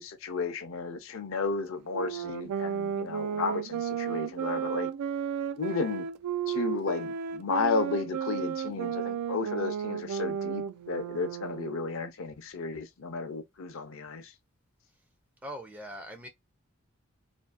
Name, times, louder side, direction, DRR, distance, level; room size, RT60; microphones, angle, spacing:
voice 1, 0.0-4.9 5.6-6.1 6.5-14.2, left 4 dB, 65° left, 0.5 m, -33 dB
sound 1, 1.9-11.9, right 8 dB, 90° right, 0.3 m, -33 dB
voice 2, 15.4-16.3, equal, 5° right, 0.3 m, -41 dB
2.5 x 2.2 x 2.4 m
head